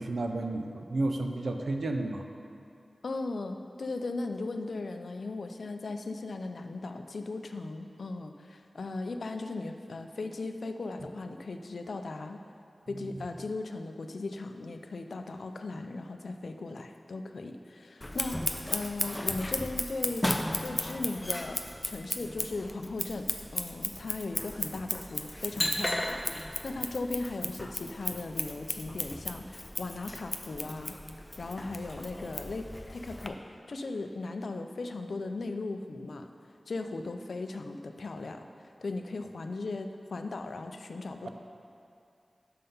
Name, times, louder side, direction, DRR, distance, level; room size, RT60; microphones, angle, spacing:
voice 1, 0.0-2.2 12.9-13.3 41.2-41.3, right 2 dB, 80° right, 4 dB, 0.4 m, -32 dB
voice 2, 3.0-12.4 12.9-18.5 18.7-20.3 20.6-30.9 31.4-36.3 36.7-41.3, left 3 dB, 80° left, 6 dB, 0.4 m, -37 dB
Scissors, 18.0-33.3, left 1 dB, 20° left, 0.4 m, -35 dB
5.6 x 5.5 x 5.3 m, 2.5 s
wide cardioid pair, 60°, 0 cm